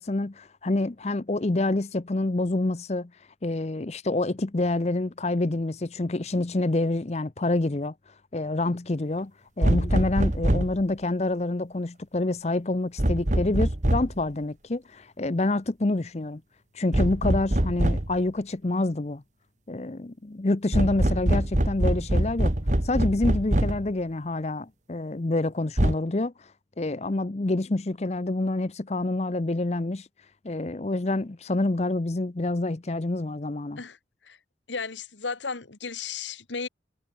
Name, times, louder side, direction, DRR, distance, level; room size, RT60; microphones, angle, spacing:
voice 1, 0.0-3.1 3.4-7.9 8.3-9.3 9.6-16.4 16.7-19.2 19.7-22.5 22.8-26.5 26.8-30.1 30.4-33.8, left 2 dB, 35° left, 0.7 m, -27 dB
sound 1, 9.6-10.8 13.0-14.2 16.9-18.2 20.7-23.9 25.8-25.9, right 1 dB, 40° right, 1.6 m, -24 dB
voice 2, 34.7-36.7, left 5 dB, 80° left, 1.5 m, -34 dB
head